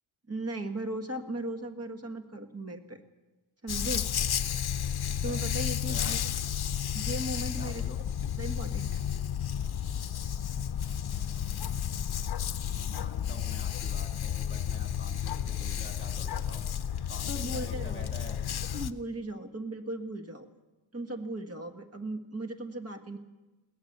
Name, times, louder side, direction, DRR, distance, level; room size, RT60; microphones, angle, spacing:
voice 1, 0.3-3.0 3.6-4.1 5.2-6.2 6.9-7.9 8.4-9.0 17.3-18.4 18.7-20.5 20.9-23.2, right 2 dB, 30° right, 5 dB, 1.7 m, -37 dB
Dog, 3.7-18.9, left 9 dB, 50° left, 0.8 m, -32 dB
voice 2, 5.0-5.4 5.9-6.1 7.6-8.0 12.9-16.6 17.1-18.4, left 2 dB, 25° left, 5 dB, 1.8 m, -47 dB
21.5 x 17.5 x 6.8 m, 1.1 s
wide cardioid pair, 165°, 49 cm